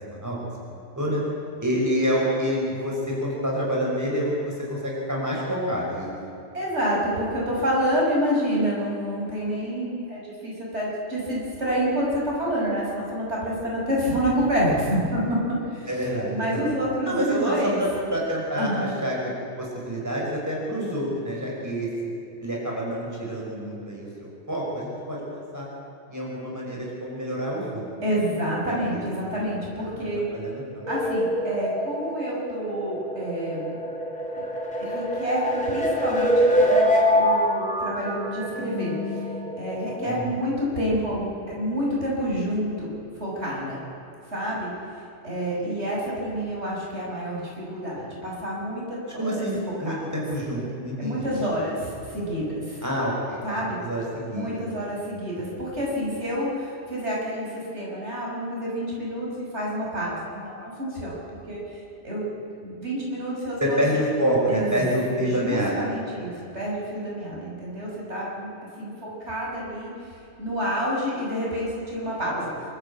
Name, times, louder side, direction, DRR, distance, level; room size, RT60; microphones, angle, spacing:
voice 1, 0.7-1.2 1.6-6.1 15.9-16.7 17.0-19.2 19.6-21.9 22.4-25.7 26.1-27.9 28.7-29.0 29.8-29.9 30.3-30.9 40.1-40.4 49.2-51.3 52.8-54.7 63.6-65.8, equal, 15° right, -4 dB, 5.4 m, -27 dB
voice 2, 6.5-15.2 15.5-15.9 16.3-17.8 18.6-18.9 28.0-30.2 30.9-33.7 34.3-34.4 34.8-39.3 39.6-42.9 43.1-43.8 44.3-48.9 49.1-49.5 49.8-50.2 51.0-52.8 53.4-53.8 54.3-62.2 62.6-63.8 64.5-68.5 68.8-72.5, equal, 75° right, -5 dB, 6.5 m, -28 dB
sound 1, 30.8-40.2, equal, 5° left, 4.3 m, -25 dB
26.5 x 13.0 x 8.5 m, 2.7 s
omnidirectional pair, 1.2 m